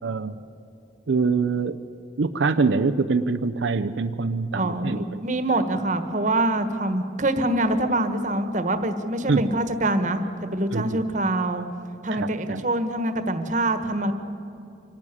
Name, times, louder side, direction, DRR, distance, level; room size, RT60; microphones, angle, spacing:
voice 1, 0.0-0.4 1.1-1.8 2.2-5.2 9.3-9.4 10.7-11.0 12.1-12.6, right 4 dB, 85° right, 9 dB, 0.6 m, -24 dB
voice 2, 4.5-11.6 12.0-14.1, right 1 dB, 40° right, 9 dB, 1.4 m, -25 dB
25.5 x 12.0 x 9.8 m, 2.7 s
head